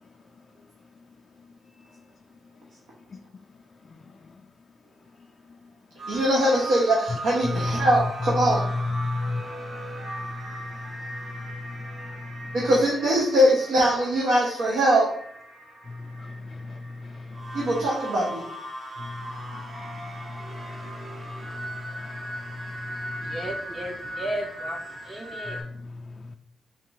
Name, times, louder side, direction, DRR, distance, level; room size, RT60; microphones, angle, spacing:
voice 1, 3.9-4.4 7.4-12.7 15.9-17.9 19.0-23.5 25.5-26.4, left 3 dB, 45° left, 0.3 m, -35 dB
sound 1, 6.0-25.6, right 1 dB, 55° right, 1.3 m, -38 dB
voice 2, 6.1-8.6 12.5-15.1 17.5-18.5, equal, 85° right, 1.0 m, -22 dB
voice 3, 22.9-25.6, right 1 dB, 30° right, 0.7 m, -35 dB
3.7 x 2.9 x 4.7 m
cardioid pair, 70°, 0 cm